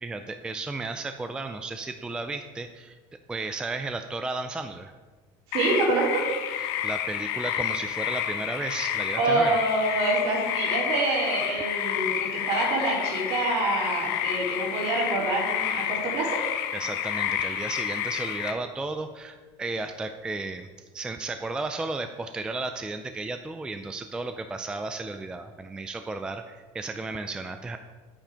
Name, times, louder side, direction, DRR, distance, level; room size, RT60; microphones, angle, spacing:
voice 1, 0.0-3.0 3.3-4.9 6.6-9.5 16.7-20.7 20.9-27.8, right 3 dB, 5° right, 7 dB, 0.3 m, -34 dB
sound 1, 5.5-18.5, left 10 dB, 80° left, 1.0 m, -30 dB
voice 2, 5.5-6.3 9.1-16.4, right 2 dB, 55° right, -4 dB, 4.0 m, -26 dB
10.0 x 8.8 x 5.1 m, 1.3 s
cardioid pair, 170°, 13 cm